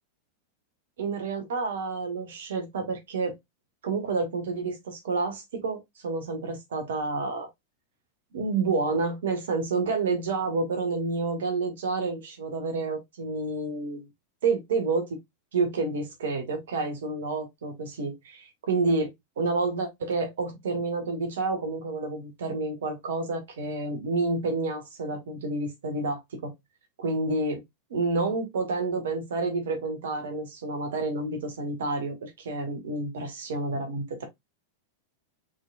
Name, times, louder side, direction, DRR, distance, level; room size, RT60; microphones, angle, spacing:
voice 1, 1.0-3.3 3.8-7.5 8.3-14.1 14.4-15.1 15.5-19.1 19.4-26.5 27.0-27.6 27.9-34.3, right 3 dB, 60° right, 1.6 m, -29 dB
4.8 x 4.1 x 2.5 m
figure-of-eight pair, 90°, 0 cm